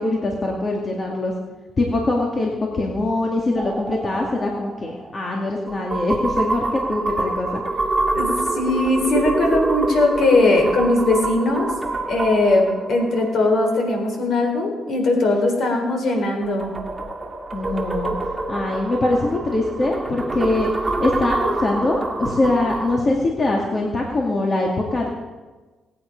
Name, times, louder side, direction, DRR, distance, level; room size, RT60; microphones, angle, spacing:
voice 1, 0.0-1.3 1.8-7.6 17.5-18.2 18.5-25.1, left 2 dB, 35° left, -1 dB, 2.2 m, -23 dB
sound 1, 3.6-14.2 16.1-23.0, right 3 dB, 20° right, 1.9 m, -27 dB
voice 2, 8.1-11.7 12.1-16.7, left 2 dB, 60° left, 2 dB, 4.2 m, -19 dB
19.5 x 9.1 x 5.3 m, 1.3 s
cardioid pair, 90°, 0 cm